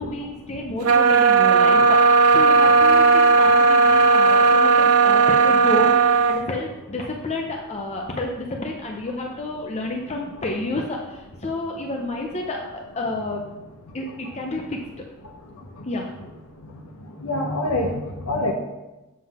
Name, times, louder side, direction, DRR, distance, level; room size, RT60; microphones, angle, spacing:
voice 1, 0.0-13.4 13.9-14.8 15.8-16.2, left 2 dB, 30° left, 1 dB, 0.6 m, -30 dB
sound 1, 0.8-6.4, right 4 dB, 70° right, 0.6 m, -15 dB
voice 2, 17.2-18.5, left 1 dB, 75° left, 2 dB, 0.7 m, -25 dB
7.4 x 3.8 x 5.8 m, 1.0 s
head